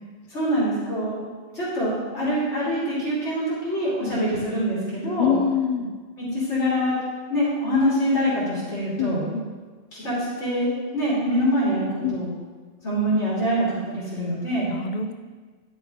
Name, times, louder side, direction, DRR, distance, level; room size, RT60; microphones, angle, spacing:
voice 1, 0.3-1.2 1.5-5.4 6.2-7.0 7.3-9.3 9.9-12.3 12.8-14.7, equal, 90° left, -9 dB, 3.6 m, -24 dB
voice 2, 5.2-5.9 9.0-9.5 12.0-12.2 14.7-15.1, left 7 dB, 50° left, 7 dB, 0.7 m, -25 dB
11.0 x 6.3 x 5.0 m, 1.4 s
omnidirectional pair, 1.1 m